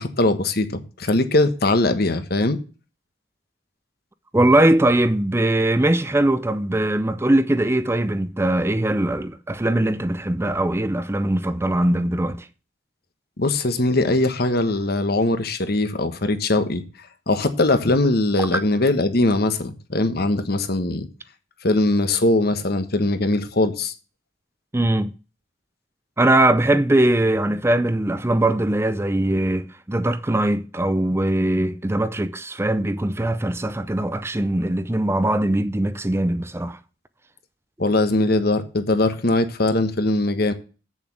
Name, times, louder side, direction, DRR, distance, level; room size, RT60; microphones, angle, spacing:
voice 1, 0.0-2.6 13.4-16.8 17.3-21.1 21.6-23.9 37.8-40.5, left 2 dB, 60° left, 1.3 m, -21 dB
voice 2, 4.3-12.5 18.4-18.6 24.7-25.1 26.2-36.8, right 1 dB, 15° right, 0.5 m, -21 dB
8.3 x 7.0 x 7.2 m
head